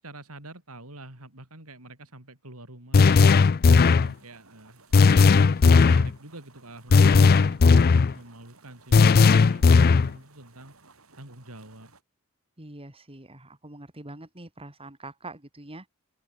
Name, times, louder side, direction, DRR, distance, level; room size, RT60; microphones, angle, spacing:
voice 1, 0.0-3.5 4.0-10.8 11.2-11.9, right 1 dB, 90° right, 7.2 m, -47 dB
sound 1, 2.9-4.1 4.9-6.1 6.9-8.1 8.9-10.1, left 4 dB, 45° left, 0.4 m, -16 dB
sound 2, 3.8-12.0, right 3 dB, 70° right, 7.9 m, -58 dB
voice 2, 12.6-15.9, right 2 dB, 25° right, 4.2 m, -44 dB
open air
head